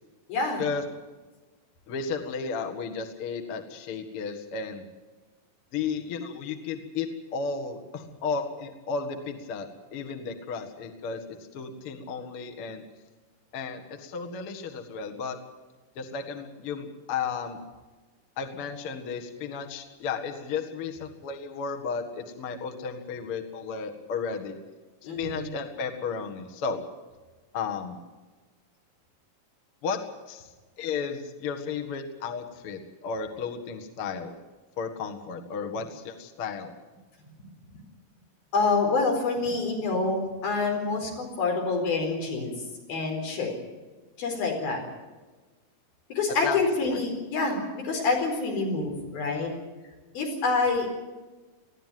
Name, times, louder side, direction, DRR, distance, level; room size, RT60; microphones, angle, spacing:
voice 1, 0.3-0.6 25.0-25.5 38.5-42.5 42.9-43.5 44.2-44.8 46.1-49.5 50.1-50.9, left 3 dB, 80° left, 2 dB, 6.3 m, -27 dB
voice 2, 1.9-4.8 5.7-11.2 11.5-12.8 13.5-15.4 16.0-17.6 18.4-24.6 25.2-26.8 27.5-28.0 29.8-30.0 30.3-30.5 30.8-34.3 34.8-36.7 46.4-47.0, left 5 dB, 45° left, 4 dB, 2.1 m, -33 dB
20.5 x 15.0 x 9.3 m, 1.3 s
omnidirectional pair, 4.2 m